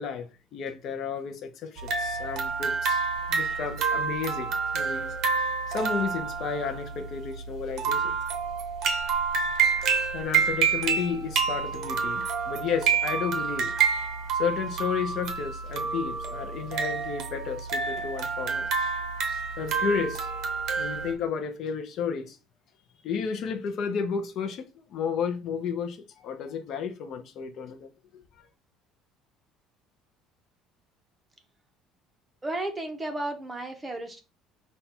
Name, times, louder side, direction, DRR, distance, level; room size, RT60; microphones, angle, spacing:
voice 1, 0.0-3.0 3.3-5.1 5.7-8.2 10.1-13.7 14.3-18.7 19.6-20.3 20.8-22.4 23.0-28.5, left 6 dB, 40° left, 0.6 m, -32 dB
sound 1, 1.8-21.1, right 5 dB, 45° right, 0.7 m, -28 dB
voice 2, 32.4-34.2, right 2 dB, 10° right, 0.7 m, -33 dB
5.3 x 2.3 x 4.2 m
cardioid pair, 175°, 0 cm